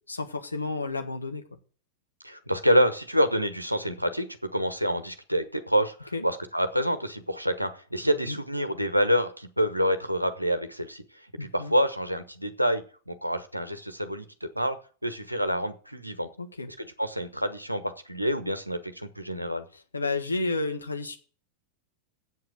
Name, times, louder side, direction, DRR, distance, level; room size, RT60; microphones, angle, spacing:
voice 1, 0.1-1.4 6.1-6.2 8.0-8.4 11.4-11.7 16.4-16.7 19.7-21.2, left 3 dB, 80° left, 5 dB, 1.4 m, -31 dB
voice 2, 2.2-4.3 4.5-11.0 11.4-14.8 15.0-16.3 16.8-19.6, equal, 90° right, 9 dB, 1.1 m, -27 dB
8.0 x 7.6 x 7.8 m, 0.40 s
figure-of-eight pair, 90°, 0 cm